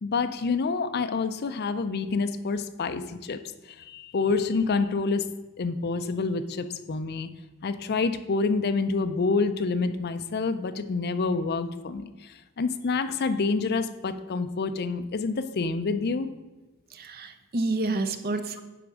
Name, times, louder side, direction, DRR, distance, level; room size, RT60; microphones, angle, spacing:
voice 1, 0.0-3.4 3.7-5.3 5.6-7.3 7.6-16.3, left 4 dB, 45° left, 10 dB, 0.5 m, -27 dB
voice 2, 16.9-18.6, right 2 dB, 45° right, 9 dB, 0.6 m, -29 dB
10.0 x 3.5 x 6.1 m, 1.1 s
head